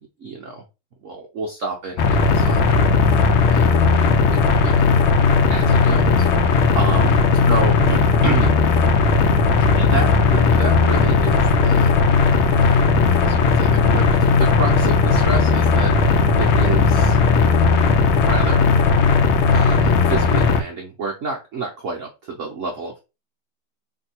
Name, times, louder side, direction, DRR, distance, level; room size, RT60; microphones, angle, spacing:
voice 1, 0.2-0.6 1.0-4.9 5.5-7.2 7.5-8.6 9.8-11.9 12.3-17.2 17.9-18.7 19.5-23.0, right 3 dB, 85° right, 1 dB, 0.6 m, -30 dB
sound 1, 2.0-20.6, left 4 dB, 80° left, 1.4 m, -16 dB
3.6 x 2.6 x 4.2 m, 0.28 s
omnidirectional pair, 2.3 m